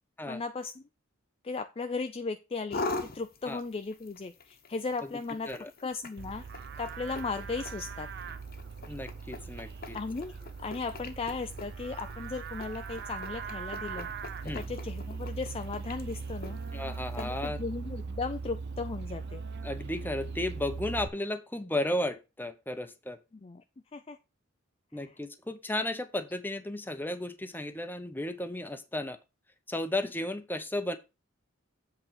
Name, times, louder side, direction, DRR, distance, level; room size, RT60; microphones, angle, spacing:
voice 1, 0.3-0.8 1.4-2.9 3.1-5.5 5.8-6.4 6.8-8.1 9.9-10.3 10.6-14.1 14.5-16.6 17.2-19.4 23.4-23.6 23.9-24.2 24.9-25.0, left 4 dB, 30° left, 7 dB, 0.4 m, -36 dB
sound 1, 2.7-17.5, left 3 dB, 45° left, 1.1 m, -44 dB
Livestock farm animals working animals, 6.2-21.1, right 5 dB, 55° right, 0.7 m, -40 dB
voice 2, 8.9-10.0 14.4-14.7 16.7-17.6 19.6-23.2 24.9-29.2 29.7-31.0, left 1 dB, 10° left, 9 dB, 0.8 m, -34 dB
8.0 x 3.9 x 5.7 m, 0.27 s
head